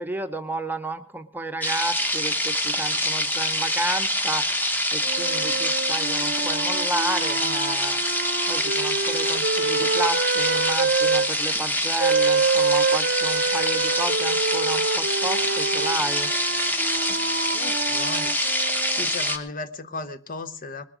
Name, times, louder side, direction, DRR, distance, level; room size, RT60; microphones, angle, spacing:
voice 1, 0.0-8.0 8.5-16.3, right 2 dB, 10° right, 8 dB, 0.9 m, -32 dB
sound 1, 1.6-19.4, left 1 dB, 10° left, 1.3 m, -25 dB
sound 2, 5.0-11.3 12.0-19.1, right 4 dB, 50° right, 0.7 m, -27 dB
voice 2, 17.5-18.4 18.9-20.8, left 3 dB, 45° left, 12 dB, 0.9 m, -35 dB
21.0 x 7.5 x 6.2 m, 0.43 s
head